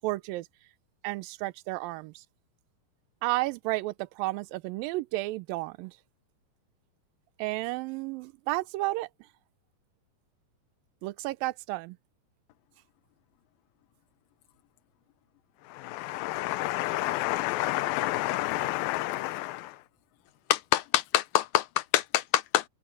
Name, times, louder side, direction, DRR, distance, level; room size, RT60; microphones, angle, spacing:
voice 1, 0.0-0.5 1.0-2.2 3.2-6.0 7.4-9.1 11.0-12.0, right 19 dB, 85° right, 2.4 m, -32 dB
voice 2, 15.7-19.8, left 17 dB, 90° left, 2.5 m, -30 dB
voice 3, 20.5-22.6, left 14 dB, 70° left, 2.2 m, -25 dB
omnidirectional pair, 4.0 m